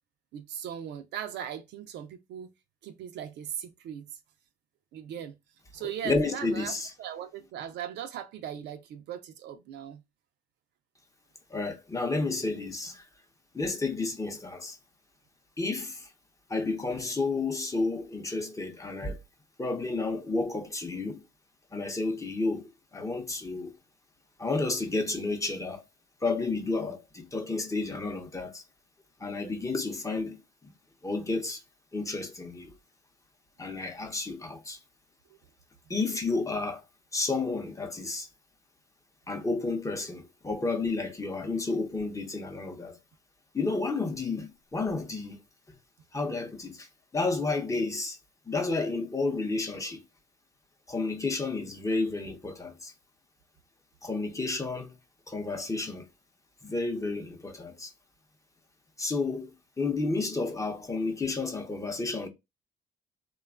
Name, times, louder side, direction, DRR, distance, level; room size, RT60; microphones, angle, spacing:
voice 1, 0.3-2.5 2.8-4.1 4.9-5.3 5.7-6.7 7.0-10.0 35.3-35.4, right 9 dB, 75° right, 0.5 m, -39 dB
voice 2, 6.0-6.9 11.5-13.0 13.5-14.8 15.6-16.1 16.5-19.2 19.6-21.2 21.7-23.7 24.4-25.8 26.2-28.6 29.2-30.4 31.0-31.6 31.9-32.8 33.6-34.8 35.9-36.8 37.1-38.3 39.3-43.0 43.5-45.4 45.7-45.8 46.1-48.2 48.5-50.0 50.9-52.9 54.0-54.9 55.3-56.1 56.6-57.9 59.0-62.3, left 3 dB, 20° left, 0.7 m, -31 dB
3.0 x 2.3 x 2.3 m
cardioid pair, 85°, 18 cm